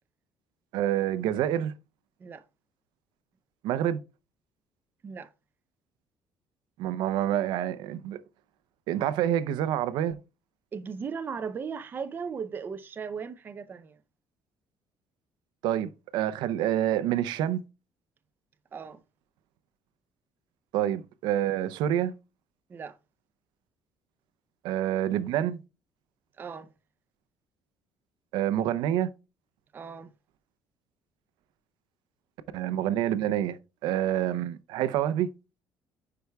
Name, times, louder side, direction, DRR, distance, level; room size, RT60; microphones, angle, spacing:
voice 1, 0.7-1.7 3.6-4.0 6.8-8.2 8.9-10.2 15.6-17.6 20.7-22.1 24.6-25.6 28.3-29.1 32.5-35.3, right 11 dB, 80° right, 0.6 m, -27 dB
voice 2, 10.7-14.0 18.7-19.0 22.7-23.0 26.4-26.7 29.7-30.1, right 6 dB, 25° right, 0.6 m, -37 dB
9.9 x 4.6 x 2.3 m
cardioid pair, 160°, 8 cm